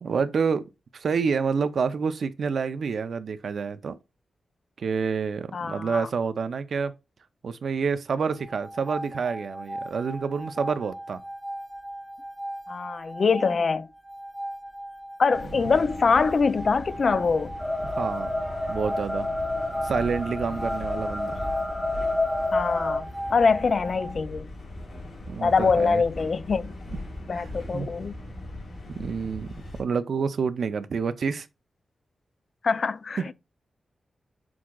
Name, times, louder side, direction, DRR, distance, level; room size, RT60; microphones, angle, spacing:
voice 1, 0.0-4.0 4.8-6.9 7.4-11.2 15.5-15.7 17.8-18.3 18.7-19.3 19.8-21.4 25.3-26.0 27.3-27.9 28.9-29.5 29.8-31.5 33.2-33.3, right 5 dB, 70° right, 0.4 m, -28 dB
voice 2, 5.5-6.1 12.7-13.9 15.2-17.5 22.5-24.5 25.4-26.7 27.3-28.2 32.6-33.2, left 5 dB, 55° left, 0.3 m, -24 dB
sound 1, 8.3-24.1, right 1 dB, 15° right, 0.9 m, -38 dB
sound 2, 15.3-29.8, left 1 dB, 70° left, 2.9 m, -40 dB
sound 3, 17.6-23.0, left 2 dB, 20° left, 0.9 m, -29 dB
6.0 x 3.6 x 2.3 m
wide cardioid pair, 100°, 0 cm